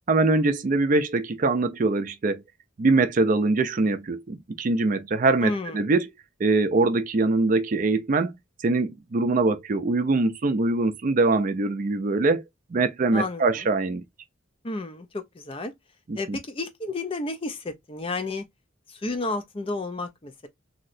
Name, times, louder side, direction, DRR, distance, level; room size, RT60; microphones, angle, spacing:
voice 1, 0.1-2.4 2.8-6.1 6.4-8.3 8.6-12.4 12.7-14.0 16.1-16.4, right 3 dB, 40° right, 0.4 m, -23 dB
voice 2, 5.4-5.8 13.1-13.7 14.6-15.7 16.1-18.4 18.9-20.5, left 2 dB, 25° left, 0.5 m, -32 dB
3.1 x 2.8 x 2.4 m
head